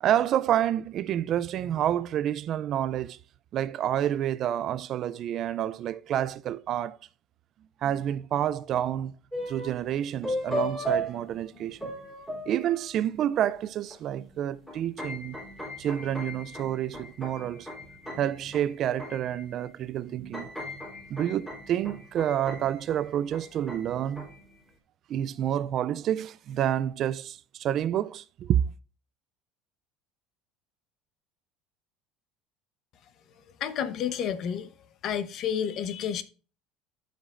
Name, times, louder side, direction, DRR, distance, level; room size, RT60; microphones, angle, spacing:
voice 1, 0.0-3.2 3.5-7.0 7.8-9.1 9.5-11.9 12.5-15.4 15.8-17.7 18.2-20.5 21.1-24.3 25.1-28.6, right 11 dB, 40° right, 0.3 m, -28 dB
sound 1, 9.3-9.9 10.2-13.2 13.9-14.0 14.3-19.7 20.1-24.5, right 1 dB, 5° left, 3.4 m, -37 dB
voice 2, 33.6-34.7 35.0-36.2, left 8 dB, 45° left, 0.8 m, -30 dB
14.0 x 5.1 x 2.5 m
cardioid pair, 140°, 0 cm